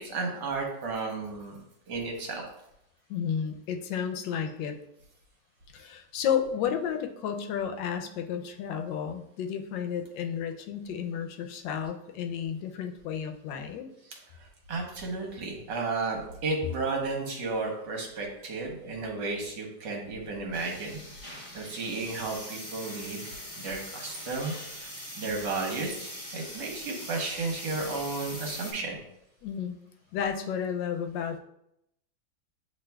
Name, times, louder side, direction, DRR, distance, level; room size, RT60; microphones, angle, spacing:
voice 1, 0.0-1.6 1.9-2.4 14.1-14.2 14.7-21.0 21.3-23.2 23.6-24.9 25.2-29.0, right 3 dB, 75° right, 1 dB, 1.6 m, -33 dB
voice 2, 3.1-4.8 5.7-13.9 29.4-29.8 30.1-31.4, left 8 dB, 85° left, 6 dB, 1.3 m, -32 dB
sound 1, 20.5-28.7, equal, 30° left, 1.3 m, -42 dB
8.0 x 2.9 x 2.2 m, 0.78 s
omnidirectional pair, 2.0 m